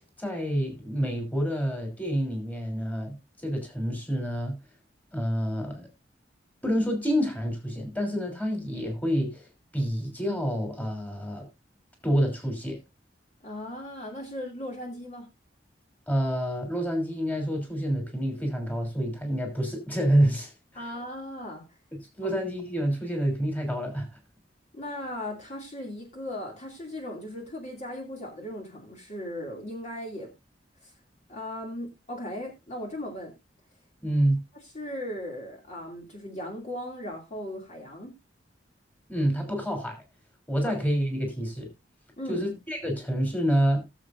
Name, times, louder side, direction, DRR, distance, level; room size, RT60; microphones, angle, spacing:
voice 1, 0.2-3.1 3.4-4.6 5.1-5.9 6.6-9.5 9.7-11.5 12.0-12.8 16.1-20.5 22.2-24.1 34.0-34.4 39.1-40.0 40.5-41.7 42.3-43.8, equal, 10° left, 3 dB, 3.3 m, -27 dB
voice 2, 13.4-15.3 20.7-21.6 24.7-30.3 30.8-30.9 31.3-33.3 34.7-38.1 42.2-42.4, left 1 dB, 40° left, 0 dB, 2.6 m, -37 dB
18.5 x 7.4 x 2.6 m, 0.24 s
head